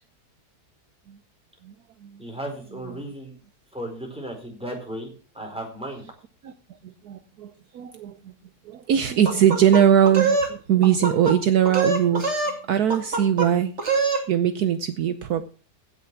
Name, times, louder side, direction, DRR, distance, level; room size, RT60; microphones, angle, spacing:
voice 1, 2.2-3.3 3.7-6.0, right 1 dB, 5° right, 2 dB, 4.2 m, -35 dB
voice 2, 6.8-8.3 8.6-13.7 14.3-15.5, right 9 dB, 70° right, 10 dB, 1.3 m, -21 dB
sound 1, 9.2-10.5 10.8-11.3 11.6-12.6 12.9-13.5 13.8-14.2, right 4 dB, 40° right, 2.6 m, -24 dB
16.0 x 6.9 x 6.0 m, 0.39 s
omnidirectional pair, 1.8 m